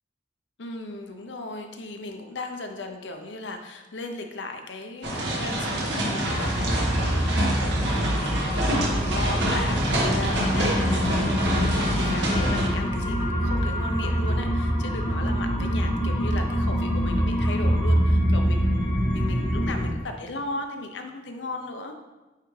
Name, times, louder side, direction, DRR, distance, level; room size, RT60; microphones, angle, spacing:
voice 1, 0.6-21.9, left 2 dB, 75° left, 5 dB, 0.7 m, -36 dB
sound 1, 5.0-12.7, right 1 dB, 75° right, 1.5 m, -26 dB
sound 2, 6.2-19.9, equal, 50° left, 1.9 m, -25 dB
sound 3, 8.0-18.0, left 1 dB, 5° left, 1.1 m, -40 dB
9.2 x 3.5 x 3.3 m, 1.1 s
head